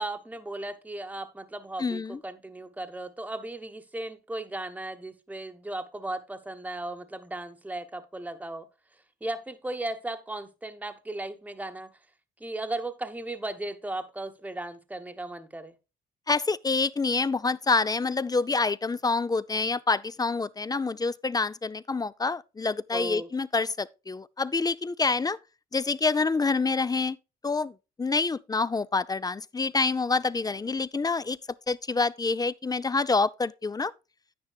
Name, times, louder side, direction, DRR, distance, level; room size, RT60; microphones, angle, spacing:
voice 1, 0.0-8.7 9.2-11.9 12.4-15.7 22.9-23.3, right 2 dB, 5° right, 1.1 m, -36 dB
voice 2, 1.8-2.2 16.3-25.4 25.7-27.2 27.4-27.7 28.0-31.4 31.7-33.9, left 4 dB, 20° left, 0.5 m, -27 dB
10.0 x 9.6 x 2.3 m
cardioid pair, 90°, 20 cm